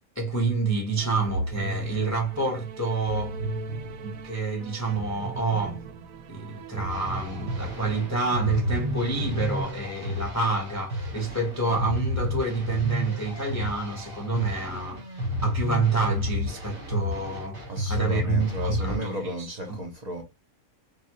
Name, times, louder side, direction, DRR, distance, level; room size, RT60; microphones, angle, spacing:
voice 1, 0.2-3.4 4.0-5.8 6.3-19.1 19.4-19.5, right 3 dB, 20° left, 0.5 m, -28 dB
sound 1, 1.0-9.6, right 3 dB, 85° right, 1.0 m, -36 dB
sound 2, 6.9-19.0, left 1 dB, 55° right, 2.0 m, -32 dB
voice 2, 17.7-20.2, right 1 dB, 40° right, 0.7 m, -34 dB
3.2 x 2.3 x 2.7 m
omnidirectional pair, 1.4 m